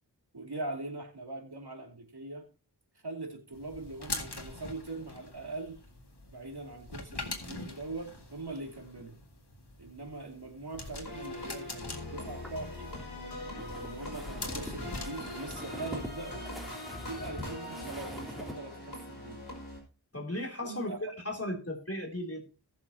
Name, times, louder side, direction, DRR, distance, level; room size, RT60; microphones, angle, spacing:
voice 1, 0.3-2.5 3.0-5.8 6.3-9.2 9.8-12.9 13.5-16.5 17.0-19.4 20.6-21.0, right 2 dB, 70° right, 2.7 m, -41 dB
sound 1, 3.5-15.6, left 3 dB, 75° left, 2.1 m, -44 dB
sound 2, 11.0-19.8, left 1 dB, 55° left, 5.1 m, -42 dB
sound 3, 12.3-18.6, left 1 dB, ahead, 3.0 m, -45 dB
voice 2, 20.1-22.4, left 1 dB, 35° left, 3.2 m, -36 dB
19.5 x 6.9 x 2.9 m
wide cardioid pair, 50°, 40 cm